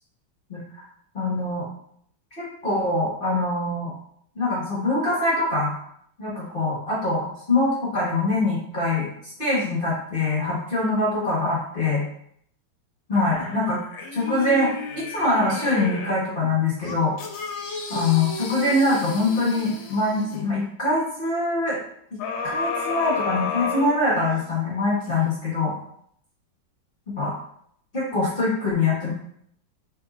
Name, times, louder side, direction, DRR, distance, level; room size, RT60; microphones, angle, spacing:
voice 1, 1.1-1.7 2.4-3.9 4.3-5.8 6.2-9.1 9.4-12.0 13.1-13.8 14.1-14.7 14.9-17.1 17.9-21.8 22.1-25.7 27.2-27.3 27.9-29.1, left 2 dB, 35° left, -7 dB, 0.9 m, -23 dB
sound 1, 13.1-16.3 16.8-20.5 22.2-24.5 25.0-25.1, left 4 dB, 70° left, 1.3 m, -32 dB
4.3 x 3.9 x 2.4 m, 0.68 s
omnidirectional pair, 2.4 m